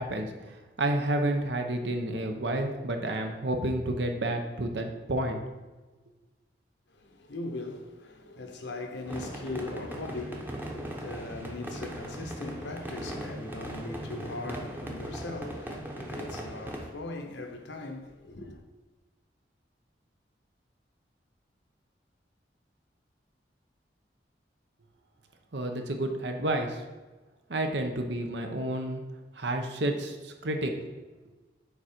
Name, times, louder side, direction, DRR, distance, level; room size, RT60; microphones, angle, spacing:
voice 1, 0.0-5.4 25.5-26.8 27.5-29.0 29.3-30.7, right 1 dB, 75° right, 1.0 m, -30 dB
voice 2, 6.9-18.6, left 2 dB, 80° left, 1.0 m, -39 dB
sound 1, 9.0-16.9, right 1 dB, 10° right, 0.8 m, -39 dB
7.1 x 5.0 x 4.4 m
head